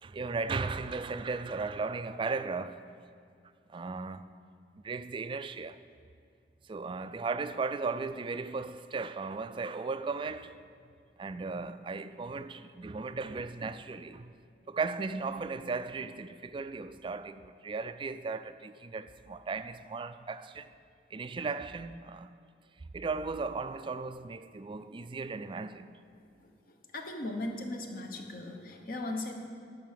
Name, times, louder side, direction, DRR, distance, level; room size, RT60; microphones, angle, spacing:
voice 1, 0.0-2.8 3.7-4.2 4.8-5.8 6.7-10.6 11.2-14.3 14.7-20.7 21.1-22.4 22.9-25.9, right 4 dB, 30° right, 0.3 m, -36 dB
voice 2, 26.1-29.3, left 2 dB, 50° left, 1.1 m, -38 dB
11.0 x 6.0 x 7.6 m
head